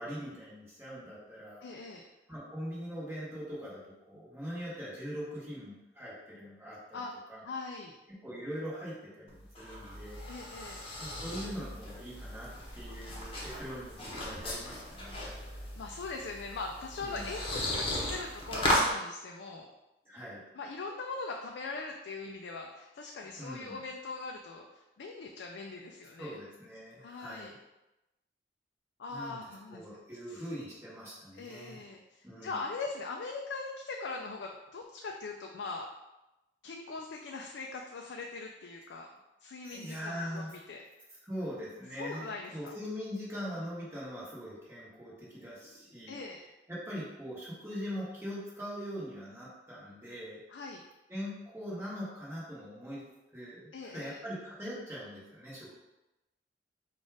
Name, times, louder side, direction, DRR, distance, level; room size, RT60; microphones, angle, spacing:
voice 1, 0.0-1.6 2.3-7.0 7.3-7.4 8.2-10.2 11.0-12.5 12.7-15.2 17.0-17.3 20.0-20.4 23.2-23.8 26.2-27.5 29.1-29.4 29.7-31.9 32.2-32.6 39.6-40.5 41.2-46.2 46.7-50.4 51.1-53.0 53.3-55.8, equal, 15° right, -7 dB, 1.4 m, -42 dB
voice 2, 1.6-2.0 6.9-7.1 7.4-7.9 10.3-10.8 15.8-19.7 20.6-26.4 27.0-27.5 29.0-29.8 30.3-30.4 31.3-35.9 36.6-39.1 39.4-40.8 42.0-42.7 46.1-46.4 50.5-50.8 53.7-54.2, left 3 dB, 85° left, 1 dB, 0.4 m, -41 dB
sound 1, 9.3-18.9, left 1 dB, 30° left, 1.0 m, -36 dB
4.2 x 2.4 x 4.7 m, 0.98 s
head